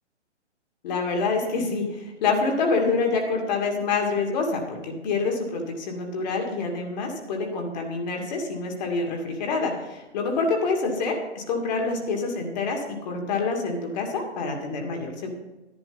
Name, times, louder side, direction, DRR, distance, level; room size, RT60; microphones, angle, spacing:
voice 1, 0.8-15.3, left 4 dB, 40° left, 2 dB, 2.4 m, -27 dB
12.0 x 10.5 x 4.0 m, 1.1 s
figure-of-eight pair, 130°, 35 cm